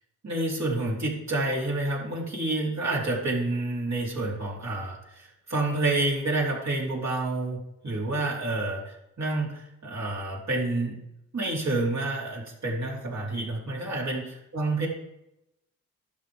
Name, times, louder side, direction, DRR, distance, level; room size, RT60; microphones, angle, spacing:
voice 1, 0.2-11.0 11.3-14.9, right 2 dB, 50° right, -3 dB, 4.0 m, -29 dB
11.5 x 7.4 x 3.5 m, 0.84 s
supercardioid pair, 45°, 36 cm